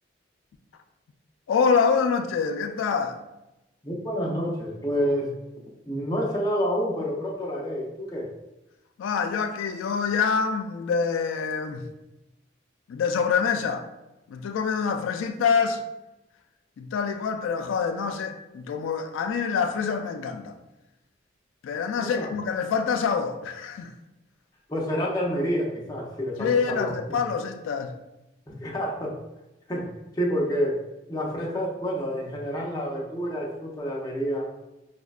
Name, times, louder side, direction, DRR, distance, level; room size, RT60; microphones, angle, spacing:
voice 1, 1.5-3.2 9.0-11.8 12.9-13.9 14.3-15.8 16.8-20.6 21.6-23.9 26.4-27.9, left 6 dB, 90° left, 6 dB, 0.3 m, -26 dB
voice 2, 3.8-5.4 5.9-8.3 22.0-22.3 24.7-27.2 28.5-29.2 29.7-29.9 30.1-30.8 31.1-34.5, equal, 20° left, -3 dB, 0.5 m, -28 dB
4.8 x 2.1 x 2.3 m, 0.96 s
head